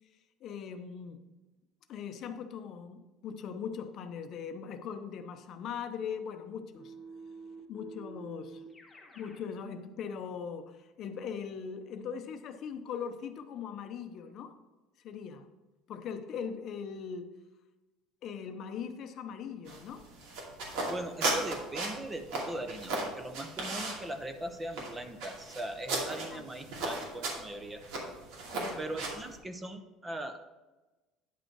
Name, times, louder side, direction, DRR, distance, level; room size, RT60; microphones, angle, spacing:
voice 1, 0.4-1.2 1.9-6.9 7.7-8.6 9.1-14.6 15.0-15.5 15.9-17.3 18.2-20.1 26.3-26.4 28.5-29.0, left 7 dB, 40° left, 8 dB, 0.7 m, -40 dB
Keyboard (musical), 6.7-9.5, right 4 dB, 10° left, 1.2 m, -48 dB
sound 1, 19.7-29.4, right 2 dB, 80° right, 2.4 m, -36 dB
voice 2, 20.9-27.8 28.8-30.4, right 1 dB, 15° right, 8 dB, 0.6 m, -40 dB
9.9 x 5.3 x 4.6 m, 1.1 s
cardioid pair, 165°, 0 cm